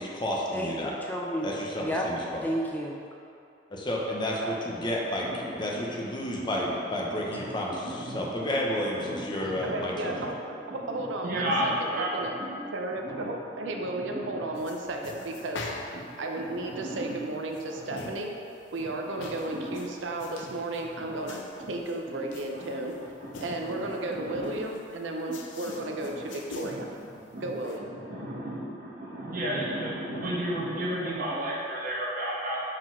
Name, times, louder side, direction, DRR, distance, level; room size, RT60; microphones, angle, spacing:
voice 1, 0.0-0.9 1.4-2.4 3.7-10.3, left 1 dB, 25° left, -3 dB, 0.7 m, -31 dB
voice 2, 0.5-2.1 2.4-3.0, equal, 10° left, -1 dB, 0.3 m, -32 dB
voice 3, 5.2-5.8 6.5-6.7 7.2-7.5 7.8-10.2 10.7-12.1 12.4-12.6 13.0-13.3 14.0-14.4 16.5-17.1 17.7-18.0 18.8-19.8 21.0-21.2 21.6-21.7 22.1-22.2 22.5-22.8 23.2-23.8 24.1-24.5 25.3-25.4 25.6-26.1 26.6-26.7 27.3-27.4 27.9-32.6, right 1 dB, 50° right, -6 dB, 1.3 m, -34 dB
voice 4, 9.6-10.3 10.7-12.3 12.7-15.7 16.2-18.3 18.7-22.9 23.4-26.9 27.4-27.9, right 2 dB, 85° right, 2 dB, 0.6 m, -34 dB
sound 1, 14.6-27.8, left 3 dB, 90° left, 0.6 m, -45 dB
4.9 x 3.9 x 5.6 m, 2.6 s
head